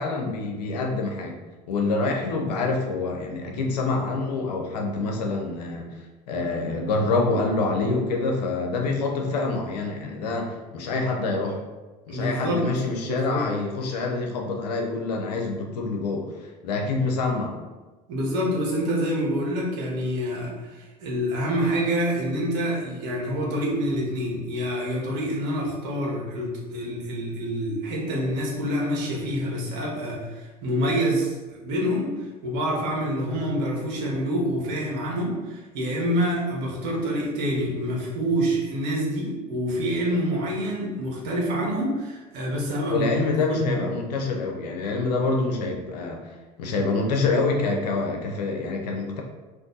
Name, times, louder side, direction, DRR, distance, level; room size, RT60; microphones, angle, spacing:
voice 1, 0.0-1.4 1.7-5.9 6.3-11.6 12.1-17.6 42.9-46.2 46.6-49.2, left 3 dB, 80° left, 1 dB, 0.6 m, -26 dB
voice 2, 12.1-12.7 13.0-13.4 18.1-43.9, equal, 65° right, -3 dB, 1.1 m, -27 dB
2.6 x 2.5 x 3.8 m, 1.2 s
hypercardioid pair, 75°, 21 cm